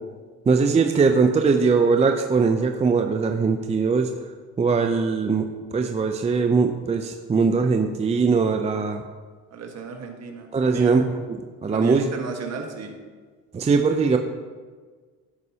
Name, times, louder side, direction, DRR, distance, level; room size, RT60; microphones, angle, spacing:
voice 1, 0.5-4.1 4.6-5.5 5.7-9.0 10.5-12.1 13.5-14.2, right 4 dB, 20° right, 6 dB, 0.5 m, -21 dB
voice 2, 9.5-10.9 11.7-12.9, right 5 dB, 50° right, 3 dB, 1.5 m, -33 dB
14.5 x 5.4 x 2.8 m, 1.5 s
cardioid pair, 90°, 33 cm